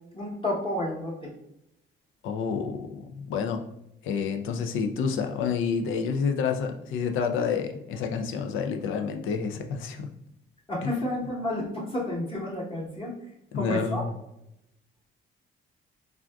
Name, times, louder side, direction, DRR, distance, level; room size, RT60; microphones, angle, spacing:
voice 1, 0.1-1.3 10.7-13.1 13.5-14.0, left 1 dB, 25° left, -4 dB, 1.0 m, -31 dB
voice 2, 2.2-3.6 4.0-10.1 10.8-10.9 13.5-14.1, left 6 dB, 85° left, 6 dB, 0.4 m, -29 dB
3.4 x 2.5 x 2.3 m, 0.82 s
cardioid pair, 90°, 20 cm